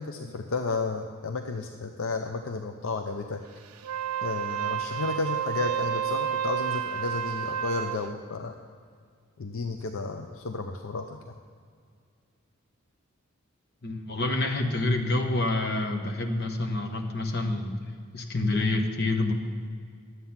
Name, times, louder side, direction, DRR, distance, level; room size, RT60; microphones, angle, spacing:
voice 1, 0.0-3.4 4.2-8.6 9.4-11.4, left 3 dB, 70° left, 4 dB, 0.6 m, -32 dB
Wind instrument woodwind instrument, 3.8-8.0, right 8 dB, 85° right, 0.5 m, -30 dB
voice 2, 13.8-17.7 18.1-19.3, left 2 dB, 50° left, 3 dB, 1.1 m, -27 dB
11.5 x 8.2 x 5.7 m, 2.1 s
head